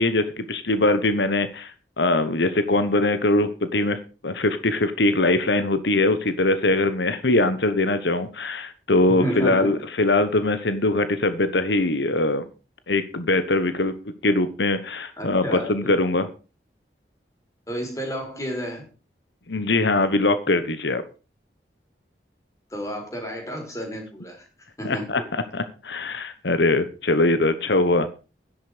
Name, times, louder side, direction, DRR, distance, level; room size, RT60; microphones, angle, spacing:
voice 1, 0.0-12.4 12.9-13.9 14.2-16.3 19.5-21.0 24.8-28.1, left 2 dB, 85° left, 12 dB, 1.2 m, -22 dB
voice 2, 9.1-9.7 15.2-15.9 17.7-18.8 22.7-24.4 24.8-25.3, equal, 20° left, 2 dB, 4.4 m, -31 dB
12.0 x 10.5 x 5.1 m, 0.34 s
head